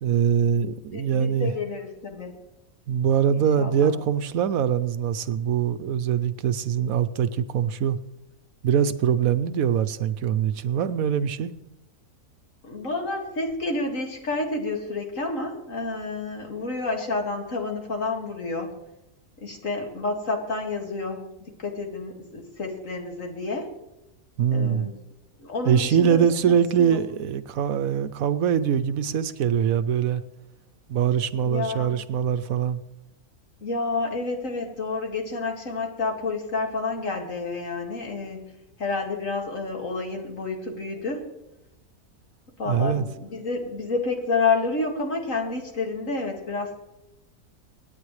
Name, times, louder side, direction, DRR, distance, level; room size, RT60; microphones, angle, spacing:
voice 1, 0.0-1.5 2.9-8.0 8.6-11.6 24.4-24.9 25.6-30.2 30.9-32.8 42.6-43.1, right 8 dB, 75° right, 12 dB, 1.1 m, -23 dB
voice 2, 0.9-2.3 3.4-3.9 12.6-18.7 19.4-21.3 21.6-23.7 24.5-25.0 25.4-27.0 31.4-31.9 33.6-41.2 42.6-46.8, left 3 dB, 60° left, 2 dB, 2.4 m, -29 dB
26.5 x 9.6 x 3.2 m, 0.95 s
omnidirectional pair, 1.6 m